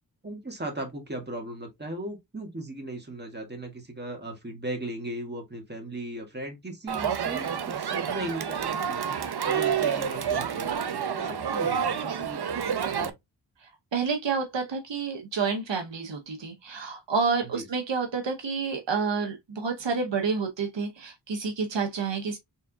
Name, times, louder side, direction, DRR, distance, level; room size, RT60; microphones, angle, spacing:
voice 1, 0.2-9.2 9.5-12.4 12.9-13.1 17.4-17.7, right 1 dB, 25° right, 1.7 m, -37 dB
Crowd, 6.9-13.1, right 7 dB, 60° right, 0.7 m, -29 dB
voice 2, 13.9-22.4, right 5 dB, 80° right, 0.9 m, -29 dB
4.3 x 3.6 x 2.3 m
wide cardioid pair, 55°, 43 cm